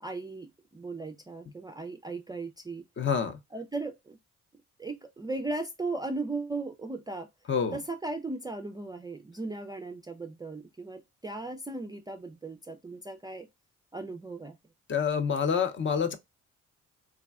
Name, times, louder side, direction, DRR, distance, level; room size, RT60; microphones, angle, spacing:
voice 1, 0.0-2.8 3.5-4.2 4.8-7.3 7.7-13.5 13.9-14.6, right 3 dB, 15° right, 0.3 m, -37 dB
voice 2, 3.0-3.4 7.5-7.8 14.9-16.1, left 6 dB, 40° left, 0.6 m, -27 dB
3.3 x 2.1 x 2.3 m
cardioid pair, 90°, 30 cm